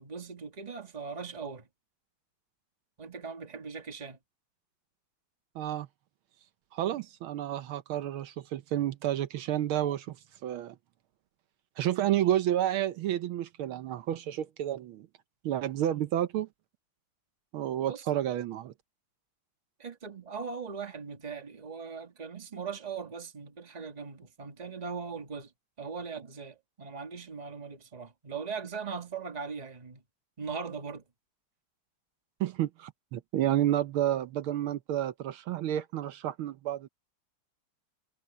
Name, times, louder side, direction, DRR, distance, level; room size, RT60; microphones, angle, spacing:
voice 1, 0.0-1.7 3.0-4.2 17.9-18.1 19.8-25.5 25.8-30.0 30.4-31.0, right 5 dB, 20° right, 1.5 m, -39 dB
voice 2, 5.5-5.9 6.7-10.2 10.4-10.7 11.8-15.1 15.4-16.5 17.5-18.7 32.4-36.9, right 12 dB, 75° right, 1.6 m, -30 dB
omnidirectional pair, 2.4 m